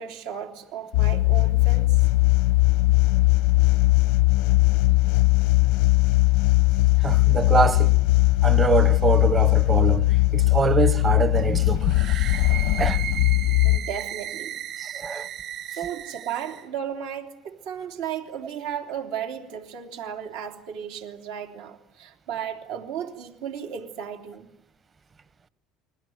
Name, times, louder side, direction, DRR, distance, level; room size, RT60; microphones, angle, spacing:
voice 1, 0.0-2.0 13.6-14.6 15.6-24.5, right 9 dB, 85° right, 3.1 m, -34 dB
sound 1, 0.9-13.8, left 21 dB, 85° left, 0.9 m, -19 dB
voice 2, 7.0-8.0 8.4-12.0 12.8-13.0 14.8-15.3, right 5 dB, 25° right, 1.0 m, -24 dB
sound 2, 11.8-16.6, right 11 dB, 55° right, 4.4 m, -35 dB
29.5 x 22.0 x 7.9 m
supercardioid pair, 115°, 0 cm